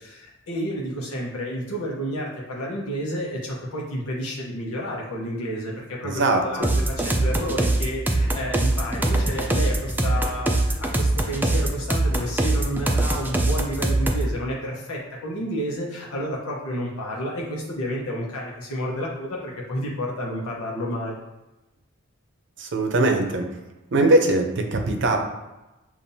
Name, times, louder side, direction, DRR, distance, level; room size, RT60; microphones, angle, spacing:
voice 1, 0.0-21.2, equal, 85° left, -3 dB, 0.9 m, -30 dB
voice 2, 6.0-6.7 22.6-23.5 23.9-25.2, right 2 dB, 60° right, 4 dB, 0.6 m, -21 dB
sound 1, 6.6-14.3, right 2 dB, 10° right, 0.3 m, -22 dB
7.0 x 2.5 x 2.7 m, 1.0 s
head